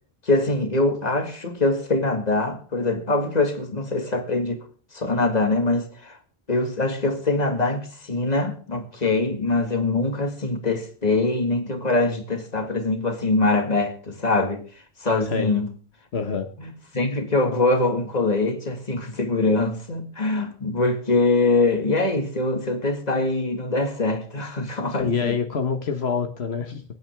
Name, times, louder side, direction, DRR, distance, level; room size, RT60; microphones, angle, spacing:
voice 1, 0.2-4.6 4.9-6.2 6.5-14.6 15.0-15.7 16.6-25.4, left 2 dB, 40° left, 2.1 m, -23 dB
voice 2, 16.1-16.5 25.0-26.8, left 5 dB, 80° left, 1.4 m, -26 dB
24.0 x 9.0 x 3.5 m
omnidirectional pair, 1.1 m